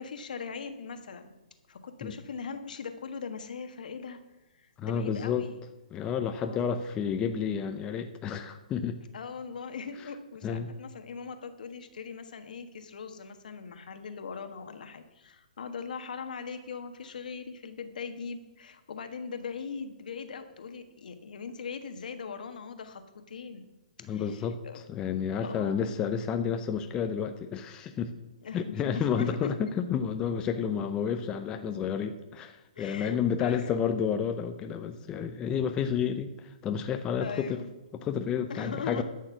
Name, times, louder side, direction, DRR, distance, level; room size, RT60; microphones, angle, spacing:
voice 1, 0.0-1.3 1.7-4.2 4.6-5.6 6.4-6.6 9.1-23.7 24.0-24.8 25.4-25.9 28.4-29.6 32.7-33.8 37.2-37.7 38.5-39.0, left 5 dB, 70° left, 8 dB, 1.4 m, -40 dB
voice 2, 4.8-5.5 5.9-9.0 10.4-10.7 24.0-28.1 28.5-37.6 37.9-39.0, left 7 dB, 20° left, 7 dB, 0.6 m, -30 dB
12.0 x 6.5 x 6.1 m, 1.1 s
hypercardioid pair, 150°, 5 cm